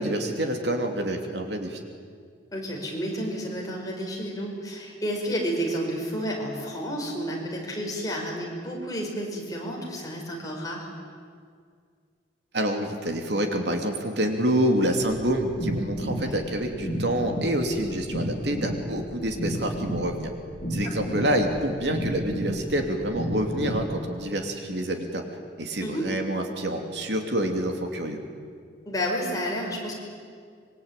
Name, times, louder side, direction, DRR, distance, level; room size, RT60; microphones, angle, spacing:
voice 1, 0.0-1.8 12.5-20.3 20.7-25.2 25.6-28.2, right 1 dB, 65° right, 4 dB, 3.0 m, -27 dB
voice 2, 2.5-10.9 16.1-16.4 20.8-21.3 25.8-26.1 28.9-30.0, equal, 20° left, -2 dB, 5.6 m, -31 dB
sound 1, 15.0-23.9, equal, 55° left, 5.4 m, -32 dB
25.5 x 23.0 x 9.1 m, 2.1 s
head